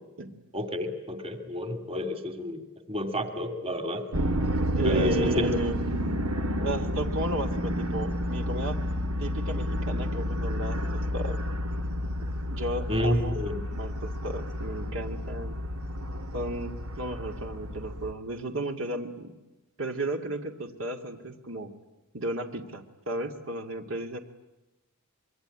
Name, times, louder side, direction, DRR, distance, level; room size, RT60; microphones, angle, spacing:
voice 1, 0.5-4.1 4.8-5.5 12.9-13.6, left 1 dB, 25° right, 8 dB, 2.5 m, -30 dB
sound 1, 4.1-18.1, equal, 85° right, 1.9 m, -30 dB
voice 2, 4.7-5.8 6.6-8.8 9.2-11.4 12.5-13.4 13.7-15.6 16.3-19.3 19.8-21.7 22.1-24.2, right 1 dB, 65° right, 5 dB, 2.3 m, -34 dB
25.5 x 23.5 x 9.9 m, 1.0 s
head